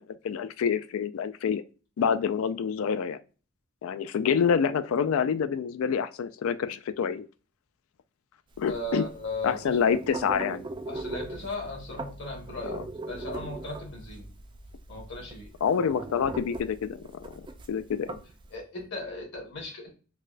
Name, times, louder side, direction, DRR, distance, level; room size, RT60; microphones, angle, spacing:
voice 1, 0.0-1.6 2.0-3.2 3.8-7.3 8.6-9.0 9.4-10.7 12.7-12.8 15.6-18.2, left 7 dB, 85° left, 0.3 m, -27 dB
sound 1, 8.5-18.5, right 2 dB, 25° right, 0.3 m, -40 dB
voice 2, 8.6-9.8 10.9-12.8 13.1-14.3 14.9-15.5 18.5-19.9, left 1 dB, 60° left, 1.6 m, -37 dB
4.2 x 2.1 x 2.5 m
head